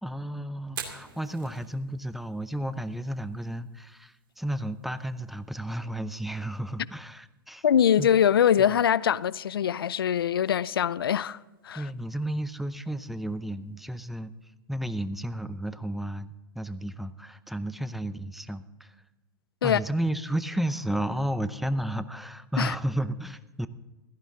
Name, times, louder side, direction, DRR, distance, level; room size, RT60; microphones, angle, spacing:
voice 1, 0.0-7.6 8.0-8.1 11.7-19.0 19.6-23.7, right 1 dB, ahead, 0.7 m, -32 dB
Fire, 0.6-14.5, right 7 dB, 75° right, 2.6 m, -51 dB
voice 2, 7.6-11.4 11.6-11.8 19.6-19.8 22.6-22.7, left 9 dB, 90° left, 0.4 m, -23 dB
16.0 x 14.5 x 3.8 m
hypercardioid pair, 100°, 12 cm